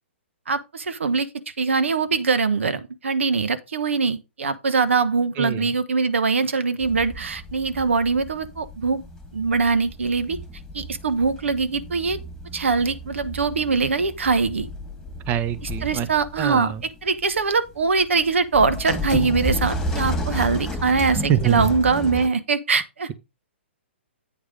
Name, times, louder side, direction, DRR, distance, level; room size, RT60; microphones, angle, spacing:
voice 1, 0.5-1.3 1.6-9.0 9.3-10.4 10.7-12.2 12.5-14.7 15.8-16.7 17.0-23.1, right 4 dB, 80° right, 1.0 m, -22 dB
voice 2, 5.4-5.7 15.3-16.1 16.4-16.8 21.3-21.7, right 10 dB, 30° right, 0.9 m, -24 dB
sound 1, 6.8-22.3, equal, 5° left, 2.0 m, -32 dB
8.6 x 4.9 x 5.1 m
hypercardioid pair, 125°, 7 cm